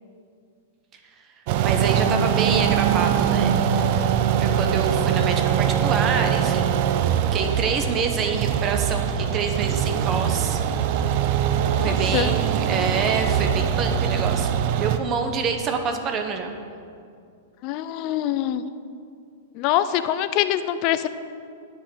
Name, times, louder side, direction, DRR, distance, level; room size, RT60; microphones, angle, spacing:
sound 1, 1.5-15.0, right 8 dB, 50° right, 0.6 m, -22 dB
voice 1, 1.6-3.6 4.4-6.9 7.3-11.2 11.8-16.5, right 5 dB, 30° right, 5 dB, 1.0 m, -27 dB
voice 2, 11.8-12.3 17.6-18.6 19.5-21.1, left 12 dB, 45° left, 12 dB, 0.5 m, -24 dB
9.8 x 5.2 x 8.1 m, 2.4 s
hypercardioid pair, 125°, 0 cm